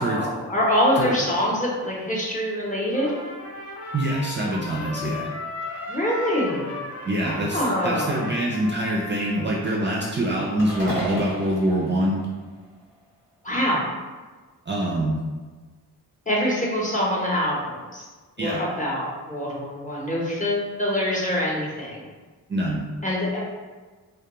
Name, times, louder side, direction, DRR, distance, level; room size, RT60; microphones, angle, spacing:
voice 1, 0.0-3.2 5.9-6.8 7.2-8.3 13.4-13.8 16.3-18.1 18.4-22.1 23.0-23.4, equal, 20° left, -5 dB, 0.8 m, -25 dB
Trumpet, 2.9-9.7, left 2 dB, 50° left, 0.8 m, -36 dB
voice 2, 3.9-5.3 7.0-12.2 14.7-15.2 18.4-18.7 22.5-22.8, right 1 dB, 30° right, -4 dB, 0.4 m, -25 dB
sound 1, 10.6-12.9, equal, 75° left, 1.3 m, -34 dB
2.2 x 2.2 x 2.9 m, 1.3 s
cardioid pair, 60°, 38 cm